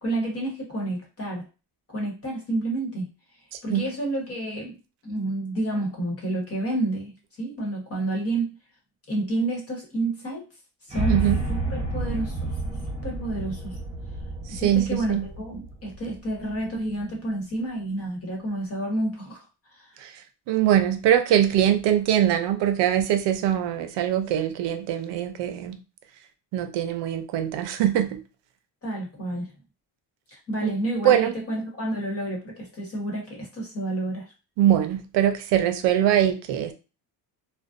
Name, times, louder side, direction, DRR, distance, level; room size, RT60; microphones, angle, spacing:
voice 1, 0.0-1.5 1.9-3.1 3.6-4.7 5.0-7.1 7.4-8.5 9.1-10.4 10.9-11.2 11.5-12.5 13.0-13.8 14.5-19.4 19.7-19.9 28.8-29.5 30.3-34.3, right 1 dB, 35° left, -1 dB, 1.1 m, -29 dB
sound 1, 10.9-17.0, right 2 dB, 15° right, 0.8 m, -30 dB
voice 2, 14.5-15.3 20.0-20.1 20.5-25.8 26.5-28.2 30.6-30.7 31.0-31.3 34.6-36.7, right 11 dB, 80° right, 8 dB, 0.5 m, -22 dB
2.5 x 2.1 x 2.4 m, 0.31 s
cardioid pair, 110°, 42 cm